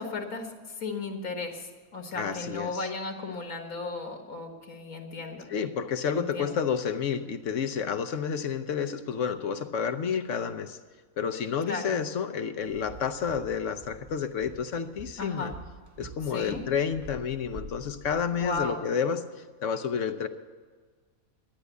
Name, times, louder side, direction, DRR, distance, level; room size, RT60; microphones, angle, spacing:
voice 1, 0.0-5.5 6.1-6.5 11.7-12.0 15.2-15.6 16.3-16.6 18.3-18.8, left 3 dB, 80° left, 3 dB, 1.9 m, -35 dB
voice 2, 2.2-2.8 5.5-10.8 11.2-15.5 16.0-19.2 19.6-20.3, left 7 dB, 65° left, 9 dB, 1.0 m, -30 dB
Walk footsteps, 12.6-18.7, right 2 dB, 20° right, 0.6 m, -47 dB
12.0 x 9.7 x 8.0 m, 1.5 s
omnidirectional pair, 1.5 m